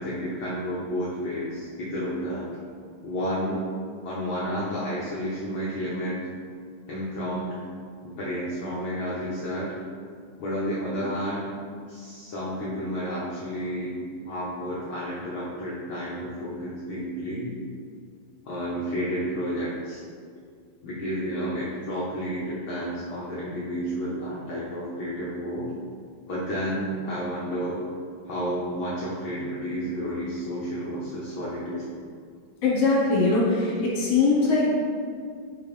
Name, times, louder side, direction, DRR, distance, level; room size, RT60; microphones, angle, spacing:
voice 1, 0.0-2.5 3.0-3.6 4.0-6.2 6.9-7.5 8.0-9.7 10.4-11.5 11.9-13.9 14.2-17.6 18.5-20.0 20.8-25.7 26.3-27.8 28.3-31.8, equal, 85° left, -7 dB, 1.1 m, -31 dB
voice 2, 32.6-34.7, left 3 dB, 60° left, -5 dB, 1.8 m, -21 dB
5.5 x 3.5 x 4.9 m, 2.1 s
omnidirectional pair, 3.6 m